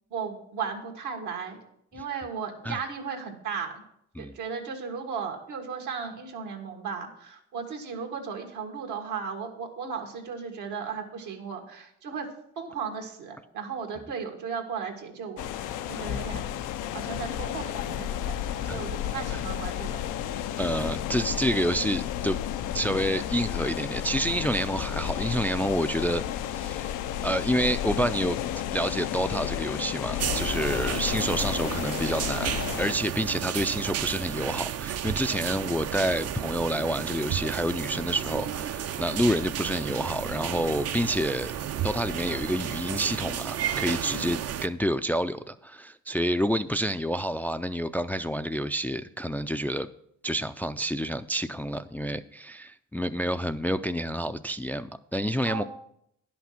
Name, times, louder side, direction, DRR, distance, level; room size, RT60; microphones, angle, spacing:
voice 1, 0.1-1.6 1.9-3.8 4.2-12.3 12.6-16.6 16.9-20.0 44.0-44.3 55.5-55.6, right 6 dB, 80° right, 3 dB, 1.8 m, -36 dB
sound 1, 15.4-32.9, left 11 dB, 90° left, 0.5 m, -32 dB
voice 2, 20.6-22.4 22.7-26.2 26.5-26.9 27.2-28.4 28.7-41.5 41.8-49.9 50.2-55.6, equal, 5° left, 10 dB, 0.3 m, -28 dB
sound 2, 30.2-44.7, right 9 dB, 55° right, 0.6 m, -32 dB
10.5 x 6.0 x 5.8 m, 0.73 s
cardioid pair, 90°, 30 cm